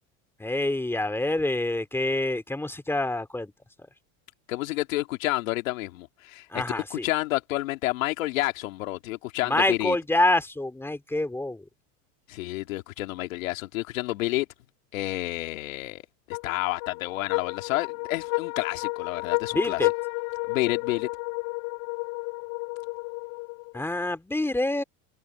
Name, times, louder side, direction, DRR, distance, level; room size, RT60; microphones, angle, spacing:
voice 1, 0.4-3.5 6.5-7.1 9.4-11.6 19.5-19.9 23.7-24.8, left 2 dB, 5° left, 2.9 m, -26 dB
voice 2, 4.5-10.0 12.3-14.5 14.9-16.0 16.3-19.8 20.5-21.1, left 18 dB, 85° left, 2.7 m, -30 dB
sound 1, 16.3-23.9, left 30 dB, 60° left, 2.7 m, -31 dB
supercardioid pair, 130°, 39 cm